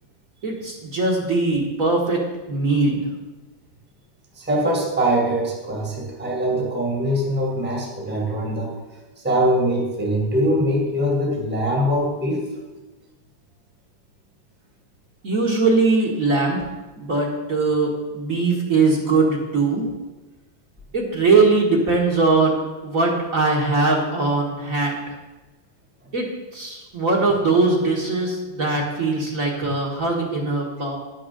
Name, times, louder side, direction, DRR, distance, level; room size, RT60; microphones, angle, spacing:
voice 1, 0.4-2.2 2.5-3.1 15.2-16.7 17.0-19.9 20.9-25.2 26.1-31.0, right 3 dB, 45° right, -2 dB, 1.9 m, -21 dB
voice 2, 4.4-8.8 9.2-12.4 29.6-29.7, equal, 5° right, 0 dB, 1.6 m, -22 dB
11.0 x 6.3 x 6.8 m, 1.2 s
omnidirectional pair, 2.1 m